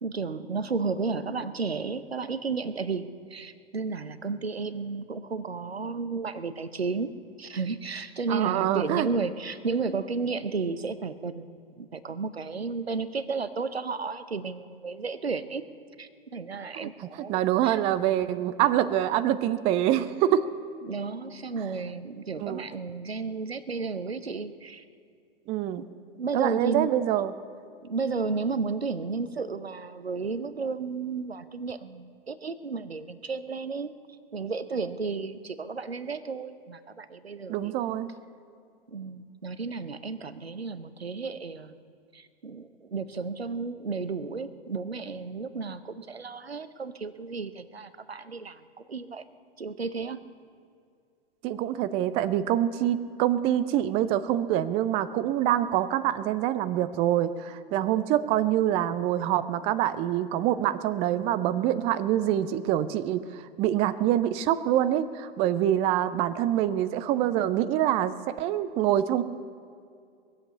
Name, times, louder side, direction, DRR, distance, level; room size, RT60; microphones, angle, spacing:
voice 1, 0.0-7.1 7.4-15.6 16.0-17.8 20.8-24.8 25.8-25.9 26.2-26.9 27.8-33.9 34.3-37.7 38.9-41.8 42.1-49.2 49.6-50.2, right 4 dB, 85° right, 13 dB, 0.8 m, -33 dB
voice 2, 8.3-9.1 16.7-20.5 22.4-22.7 25.5-25.8 26.3-27.3 37.5-38.1 51.4-69.2, right 11 dB, 20° right, 13 dB, 0.4 m, -25 dB
20.5 x 7.8 x 8.2 m, 2.3 s
figure-of-eight pair, 100°, 30 cm